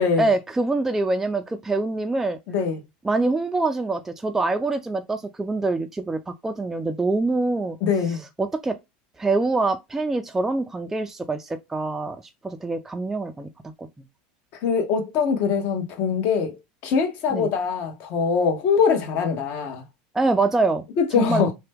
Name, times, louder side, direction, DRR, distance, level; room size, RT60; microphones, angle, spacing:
voice 1, 0.2-2.4 3.0-7.8 8.4-8.8 9.2-12.2 12.4-13.5 13.8-13.9 17.3-17.5 20.1-20.8 21.2-21.5, right 3 dB, 10° right, 0.3 m, -24 dB
voice 2, 2.5-2.8 7.8-8.2 14.6-16.6 16.8-19.8 21.0-21.5, left 6 dB, 55° left, 1.0 m, -22 dB
2.8 x 2.1 x 3.4 m
supercardioid pair, 125°, 4 cm